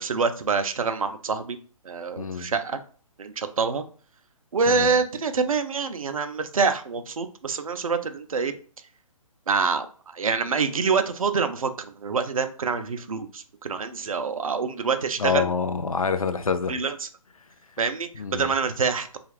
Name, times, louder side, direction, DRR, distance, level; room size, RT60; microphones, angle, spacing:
voice 1, 0.0-1.6 1.8-2.8 3.2-3.8 4.5-8.5 9.5-15.5 16.7-17.1 17.8-19.2, right 5 dB, 70° right, 0.4 m, -26 dB
voice 2, 2.2-2.5 4.7-4.9 15.2-16.7 18.2-18.5, left 5 dB, 75° left, 0.5 m, -26 dB
3.0 x 2.4 x 2.9 m
figure-of-eight pair, 135°, 18 cm